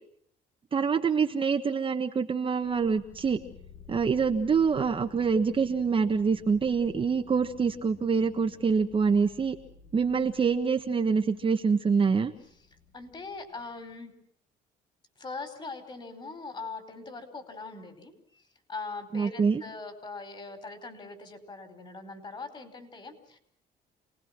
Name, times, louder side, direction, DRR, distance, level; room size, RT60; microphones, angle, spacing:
voice 1, 0.7-3.4 3.9-9.5 9.9-12.3 19.1-19.6, right 5 dB, 30° right, 4 dB, 1.4 m, -25 dB
sound 1, 2.6-14.0, left 6 dB, 80° left, 5.1 m, -53 dB
voice 2, 12.9-14.1 15.2-18.4 18.7-23.4, left 3 dB, 30° left, 8 dB, 4.8 m, -41 dB
28.0 x 19.5 x 6.1 m, 0.68 s
cardioid pair, 110°, 17 cm